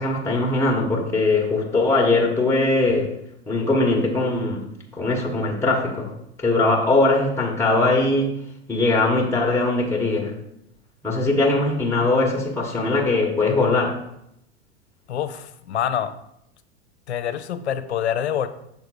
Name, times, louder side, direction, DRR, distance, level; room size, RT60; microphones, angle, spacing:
voice 1, 0.0-3.1 3.5-6.1 6.4-8.3 8.7-10.4 11.0-14.0, left 2 dB, 10° left, -1 dB, 1.4 m, -21 dB
voice 2, 15.1-16.1 17.1-18.5, left 9 dB, 75° left, 10 dB, 0.7 m, -26 dB
6.7 x 3.8 x 4.8 m, 0.78 s
figure-of-eight pair, 90°, 33 cm